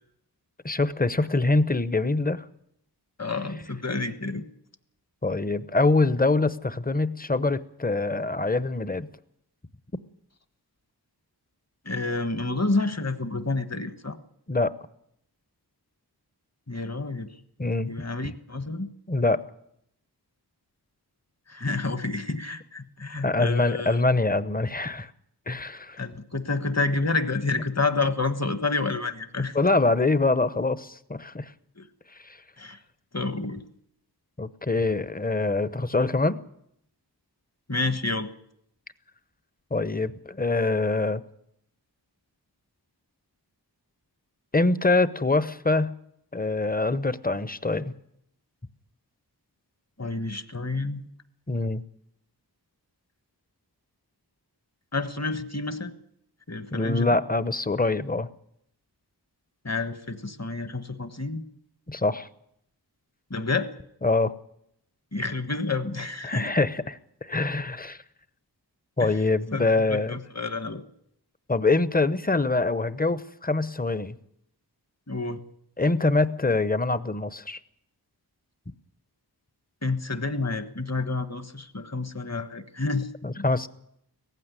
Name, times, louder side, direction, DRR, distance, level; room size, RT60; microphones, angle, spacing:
voice 1, 0.6-2.4 5.2-9.1 14.5-14.7 17.6-17.9 18.2-18.3 19.1-19.4 23.2-25.1 25.5-26.0 29.5-31.5 32.2-32.4 34.4-36.4 39.7-41.2 44.5-45.9 46.3-47.9 51.5-51.8 56.7-58.3 61.9-62.3 64.0-64.3 66.2-68.0 69.0-70.2 71.5-74.2 75.8-77.6 83.2-83.7, left 3 dB, 20° left, 15 dB, 1.0 m, -24 dB
voice 2, 3.2-4.4 11.8-14.2 16.7-17.3 17.9-18.9 21.5-24.0 26.0-29.6 31.8-31.9 32.6-32.8 33.1-33.6 37.7-38.3 50.0-51.1 54.9-55.9 56.5-57.1 59.6-61.4 63.3-63.7 65.1-66.5 69.0-69.2 69.5-70.8 75.1-75.4 79.8-83.4, left 3 dB, 40° left, 11 dB, 1.5 m, -29 dB
17.5 x 15.0 x 9.8 m, 0.74 s
wide cardioid pair, 50°, 41 cm